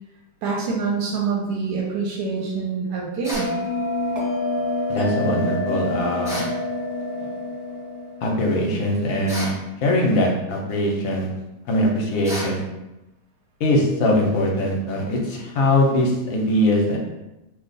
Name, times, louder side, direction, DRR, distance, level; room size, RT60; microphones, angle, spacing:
voice 1, 0.4-3.5, right 5 dB, 90° right, -3 dB, 1.2 m, -25 dB
sound 1, 3.2-3.6 6.2-6.6 9.3-9.6 12.2-12.6, equal, 5° right, 0.3 m, -31 dB
Bell, 3.3-8.4, left 1 dB, 30° right, 0.7 m, -27 dB
voice 2, 4.9-6.5 8.2-9.5 9.8-11.3 11.7-12.6 13.6-17.0, left 1 dB, 65° left, -1 dB, 1.0 m, -21 dB
3.0 x 2.1 x 3.9 m, 0.96 s
omnidirectional pair, 1.8 m